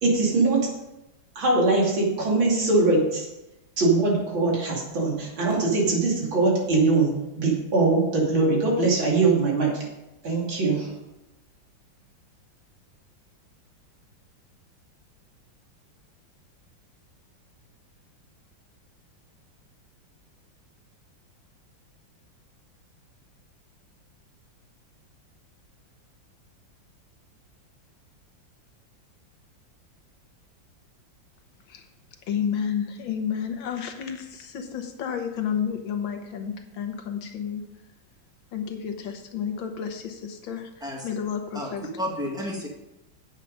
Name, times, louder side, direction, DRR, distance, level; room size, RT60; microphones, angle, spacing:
voice 1, 0.0-0.7 1.3-3.3 3.8-9.9 10.2-10.9, right 3 dB, 85° right, -2 dB, 3.4 m, -22 dB
voice 2, 32.3-37.6 38.5-40.7 41.0-41.8, left 7 dB, 80° left, 6 dB, 1.9 m, -31 dB
voice 3, 41.5-42.7, equal, ahead, -1 dB, 1.7 m, -32 dB
9.0 x 8.2 x 5.2 m, 0.93 s
omnidirectional pair, 2.1 m